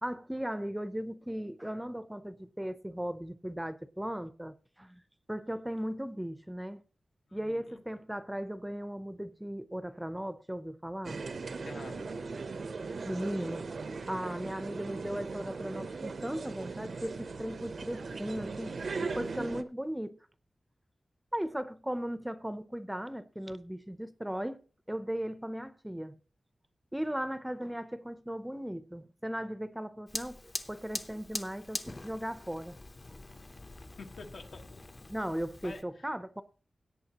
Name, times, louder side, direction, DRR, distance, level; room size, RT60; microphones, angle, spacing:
voice 1, 0.0-5.0 5.3-6.8 7.3-11.2 13.0-13.7 14.1-20.2 21.3-24.6 24.9-26.2 26.9-32.8 33.1-33.2 35.1-36.4, equal, 5° right, 0.6 m, -37 dB
voice 2, 7.3-7.8 11.6-12.0 34.0-34.8 35.6-35.8, left 3 dB, 75° left, 1.4 m, -48 dB
sound 1, 11.0-19.6, right 4 dB, 65° right, 0.7 m, -39 dB
Fire, 30.1-35.8, left 2 dB, 35° left, 0.7 m, -43 dB
17.0 x 8.6 x 2.9 m
wide cardioid pair, 135°, 0 cm